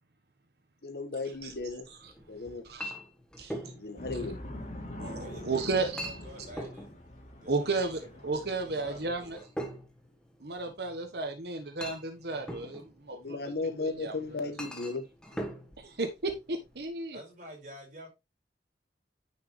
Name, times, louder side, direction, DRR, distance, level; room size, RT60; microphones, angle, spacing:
voice 1, 0.8-1.9 2.3-2.7 3.7-4.4 13.1-15.1 15.3-15.4, left 3 dB, 65° left, 1.3 m, -35 dB
Chink clink, 1.3-16.9, equal, 5° left, 1.3 m, -44 dB
voice 2, 3.4-3.7 5.0-6.1 7.5-9.4 10.4-13.4 13.8-14.1 14.4-14.5 15.8-17.2, right 3 dB, 70° right, 1.2 m, -33 dB
sound 1, 4.0-9.4, left 1 dB, 40° left, 2.8 m, -44 dB
voice 3, 5.2-6.9 7.3-7.7 8.0-8.2 8.6-9.5 17.1-18.1, equal, 45° right, 4.6 m, -48 dB
9.7 x 5.9 x 3.1 m
head